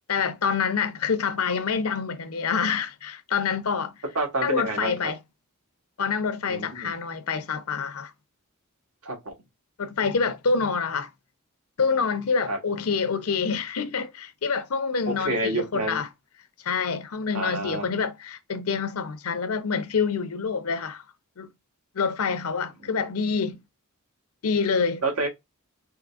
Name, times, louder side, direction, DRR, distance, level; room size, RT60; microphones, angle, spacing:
voice 1, 0.1-3.9 4.4-5.2 6.0-8.1 9.8-11.1 11.8-16.1 16.6-21.0 21.4-21.5 21.9-23.6 24.4-25.0, left 5 dB, 70° left, 0.7 m, -26 dB
voice 2, 4.1-5.1 6.5-6.9 9.0-9.3 12.5-12.6 15.1-16.0 17.3-17.9 25.0-25.3, right 2 dB, 80° right, 1.4 m, -28 dB
3.7 x 3.3 x 2.3 m
head